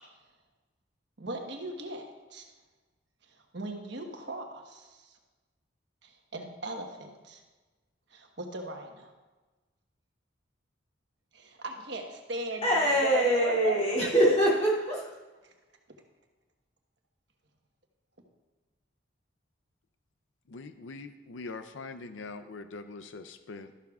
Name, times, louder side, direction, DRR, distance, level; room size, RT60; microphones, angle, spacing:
voice 1, 1.2-2.5 3.5-5.2 6.0-7.4 8.1-9.1 11.3-14.1 15.4-15.5, right 2 dB, 60° right, 2 dB, 1.2 m, -38 dB
voice 2, 12.6-15.1, equal, 30° left, -6 dB, 2.6 m, -24 dB
voice 3, 20.5-23.7, left 3 dB, 75° left, 9 dB, 0.5 m, -43 dB
13.0 x 12.0 x 2.4 m, 1.2 s
head